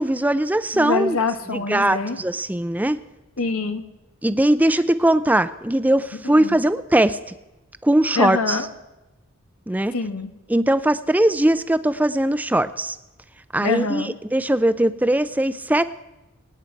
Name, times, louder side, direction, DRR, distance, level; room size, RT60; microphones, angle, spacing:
voice 1, 0.0-1.2 1.5-3.0 4.2-7.2 7.8-8.6 9.7-9.9 10.5-13.0 13.5-15.8, right 1 dB, 5° right, 13 dB, 0.5 m, -20 dB
voice 2, 0.7-2.2 3.4-3.8 6.2-6.6 8.1-8.7 9.9-10.3 13.6-14.1, left 4 dB, 90° left, 8 dB, 1.3 m, -25 dB
24.5 x 9.6 x 4.6 m, 1.0 s
head